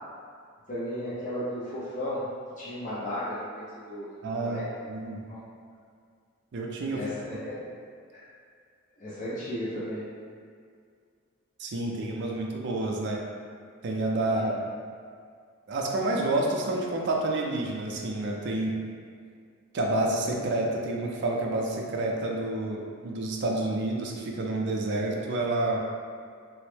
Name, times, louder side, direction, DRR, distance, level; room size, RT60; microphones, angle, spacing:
voice 1, 0.7-2.3 2.6-4.6 5.3-5.4 6.9-7.6 8.1-8.2 9.0-10.1 14.4-14.5, left 1 dB, 40° left, -10 dB, 0.5 m, -35 dB
voice 2, 4.2-4.6 4.9-5.2 6.5-7.0 11.6-13.2 13.8-14.5 15.7-18.8 19.7-25.8, right 2 dB, 55° right, 0 dB, 0.4 m, -29 dB
3.0 x 2.0 x 3.1 m, 2.1 s
head